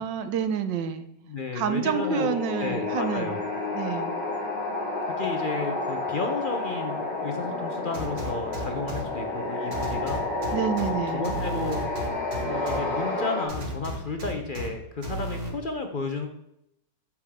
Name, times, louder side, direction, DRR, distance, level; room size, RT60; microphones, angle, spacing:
voice 1, 0.0-1.1 1.5-3.4 3.7-4.1 10.5-11.3, right 8 dB, 85° right, 10 dB, 1.5 m, -28 dB
voice 2, 1.2-2.3 2.6-3.4 5.0-10.2 10.9-11.8 12.4-16.3, left 3 dB, 45° left, 4 dB, 0.7 m, -33 dB
sound 1, 1.9-13.5, left 2 dB, 80° left, 3.6 m, -30 dB
sound 2, 7.9-9.0 9.7-10.9 11.2-12.8 13.5-14.7 15.0-15.5, right 1 dB, 45° right, 2.0 m, -33 dB
9.4 x 7.2 x 3.6 m, 0.79 s
omnidirectional pair, 1.9 m